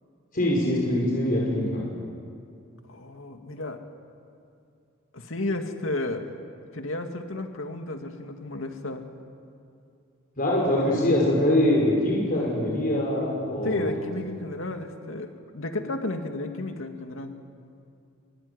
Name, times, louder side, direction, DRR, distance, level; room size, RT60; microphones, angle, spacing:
voice 1, 0.3-1.8 10.4-13.9, left 1 dB, 45° left, -3 dB, 5.5 m, -23 dB
voice 2, 2.9-3.8 5.1-6.3 6.7-9.1 13.6-17.4, left 2 dB, 80° left, 5 dB, 2.3 m, -32 dB
24.5 x 24.0 x 9.9 m, 2.4 s
head